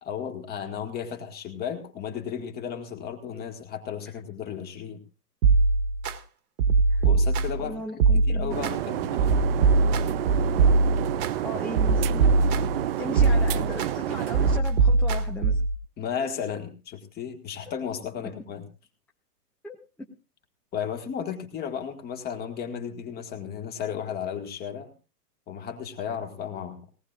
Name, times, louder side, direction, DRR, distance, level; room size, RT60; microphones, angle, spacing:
voice 1, 0.0-5.0 7.0-9.2 16.0-18.6 20.7-24.9 25.5-26.8, left 8 dB, 20° left, 6 dB, 1.8 m, -34 dB
sound 1, 5.4-6.1 6.6-7.7 8.0-8.7 9.2-11.3 11.7-12.8 13.2-13.9 14.3-15.7, right 4 dB, 60° right, 1.8 m, -21 dB
voice 2, 7.6-8.7 11.4-12.3 13.0-15.6 19.6-19.8, left 2 dB, 5° left, 0 dB, 0.8 m, -37 dB
sound 2, 8.5-14.6, right 12 dB, 35° right, 0.6 m, -30 dB
19.5 x 18.5 x 2.5 m, 0.32 s
hypercardioid pair, 140°, 49 cm